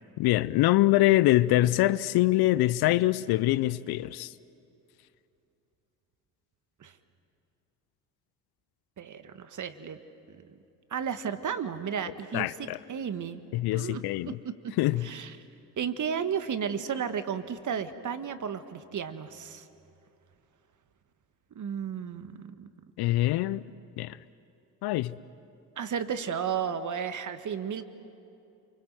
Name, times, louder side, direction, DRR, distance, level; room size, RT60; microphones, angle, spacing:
voice 1, 0.2-4.3 12.3-12.8 13.5-14.4 14.8-15.1 23.0-23.7 24.0-24.2 24.8-25.1, left 16 dB, 50° left, 0.7 m, -24 dB
voice 2, 9.0-10.0 10.3-10.4 10.9-12.5 12.9-13.4 13.7-14.0 15.0-15.4 15.8-19.6 21.5-22.7 25.8-27.8, right 7 dB, 40° right, 1.7 m, -33 dB
29.0 x 24.0 x 7.8 m
hypercardioid pair, 55°, 48 cm